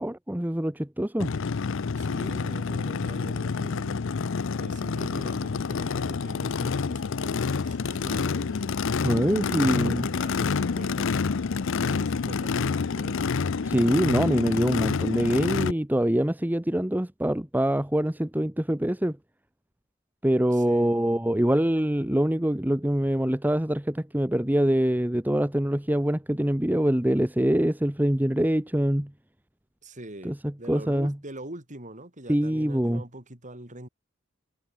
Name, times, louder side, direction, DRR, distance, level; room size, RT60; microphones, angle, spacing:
voice 1, 0.0-1.3 9.0-10.1 13.6-19.2 20.2-29.1 30.2-30.3 30.7-31.1 32.3-33.0, right 1 dB, 10° right, 0.9 m, -24 dB
Race car auto racing / Idling / Accelerating revving vroom, 1.2-15.7, left 5 dB, 65° left, 0.6 m, -28 dB
voice 2, 1.9-4.0 4.6-8.8 9.4-11.1 11.8-13.3 20.5-21.0 29.8-33.9, right 1 dB, 35° right, 5.9 m, -43 dB
head